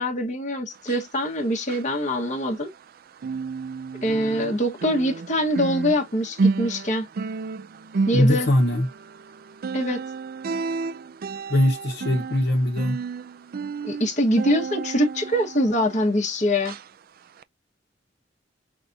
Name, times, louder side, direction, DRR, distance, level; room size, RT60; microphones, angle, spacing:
voice 1, 0.0-2.7 4.0-7.1 8.1-8.5 9.7-10.0 13.8-16.7, equal, 40° left, 1.4 m, -24 dB
sound 1, 0.7-2.9 3.2-16.3 16.6-16.9 17.4-17.5, right 4 dB, 55° right, 0.4 m, -31 dB
voice 2, 8.1-8.9 11.5-13.0, left 1 dB, 65° left, 1.1 m, -21 dB
5.9 x 2.4 x 2.7 m
head